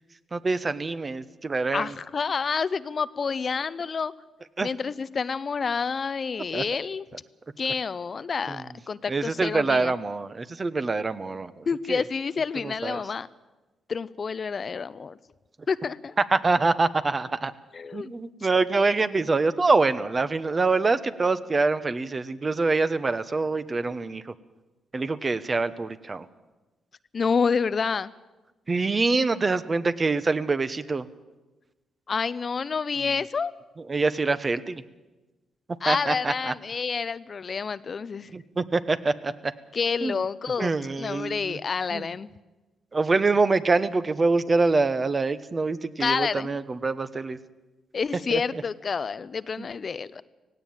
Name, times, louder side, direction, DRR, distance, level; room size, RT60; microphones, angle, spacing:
voice 1, 0.3-1.9 4.6-4.7 6.5-6.6 8.5-8.6 9.1-12.0 12.6-13.0 16.3-17.5 17.9-24.2 24.9-26.2 28.7-31.1 33.9-34.8 35.9-36.5 38.3-39.5 40.0-40.2 40.6-41.6 41.9-42.1 42.9-47.4 48.3-48.4 49.6-49.7, right 3 dB, 35° right, 13 dB, 1.1 m, -25 dB
voice 2, 1.7-4.1 4.6-7.1 7.6-9.9 11.7-13.3 13.9-15.2 15.7-16.1 17.7-18.1 27.1-28.1 32.1-33.5 35.8-38.3 39.7-42.3 46.0-46.5 47.9-50.2, left 5 dB, 45° left, 16 dB, 0.6 m, -28 dB
17.0 x 17.0 x 9.0 m, 1.1 s
cardioid pair, 70°, 0 cm